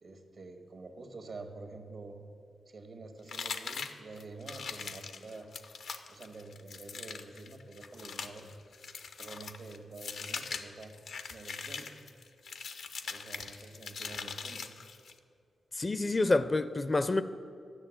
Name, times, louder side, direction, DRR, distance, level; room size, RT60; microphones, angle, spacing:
voice 1, 0.0-2.2 2.7-5.5 6.1-8.5 9.2-10.9 11.3-12.0 13.0-14.7, right 3 dB, 65° right, 1.7 m, -47 dB
sound 1, 3.3-15.2, left 5 dB, 75° left, 0.7 m, -42 dB
voice 2, 15.7-17.2, left 2 dB, 35° left, 0.5 m, -28 dB
11.5 x 6.4 x 8.9 m
supercardioid pair, 45°, 0 cm